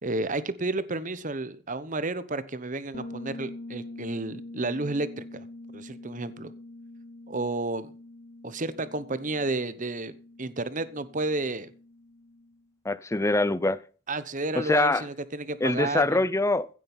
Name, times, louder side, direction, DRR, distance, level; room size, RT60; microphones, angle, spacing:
voice 1, 0.0-5.5 5.7-6.5 7.3-7.9 8.4-11.7 14.1-16.2, right 2 dB, 40° right, 14 dB, 1.1 m, -31 dB
Bass guitar, 2.9-12.6, left 2 dB, 45° left, 0.9 m, -44 dB
voice 2, 12.8-13.8 14.6-15.0 15.6-16.7, left 2 dB, 15° left, 18 dB, 0.5 m, -24 dB
16.0 x 7.7 x 5.7 m, 0.39 s
head